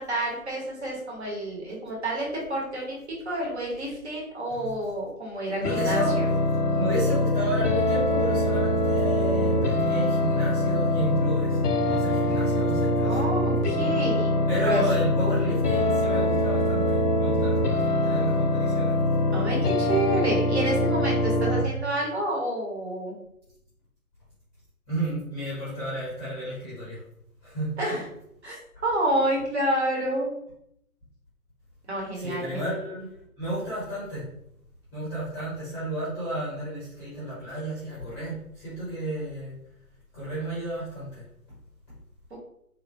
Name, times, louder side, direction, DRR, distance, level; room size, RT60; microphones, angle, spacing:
voice 1, 0.0-6.3 13.0-14.8 19.3-23.2 27.8-28.0 28.4-30.3 31.9-32.8 42.3-42.4, right 1 dB, 45° right, -3 dB, 1.2 m, -29 dB
sound 1, 5.6-21.6, left 1 dB, 90° left, 0.6 m, -24 dB
voice 2, 5.6-6.1 6.7-13.2 14.5-19.0 24.9-27.0 27.4-27.7 32.1-33.1 33.4-34.2 34.9-39.5 40.1-41.2, right 1 dB, 10° left, -10 dB, 0.8 m, -32 dB
3.4 x 2.4 x 2.6 m, 0.76 s
figure-of-eight pair, 135°, 45 cm